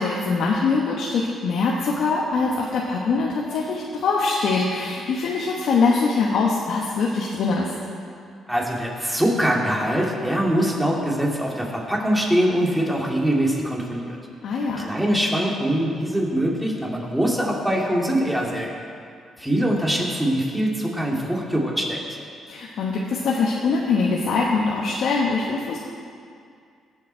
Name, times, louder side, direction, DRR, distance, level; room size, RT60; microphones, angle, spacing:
voice 1, 0.0-7.7 14.4-14.8 22.5-25.8, left 4 dB, 75° left, -3 dB, 1.2 m, -23 dB
voice 2, 8.5-14.2 14.8-18.7 19.4-22.0, equal, 5° right, -2 dB, 2.4 m, -23 dB
18.0 x 7.3 x 4.5 m, 2.3 s
cardioid pair, 90°, 0 cm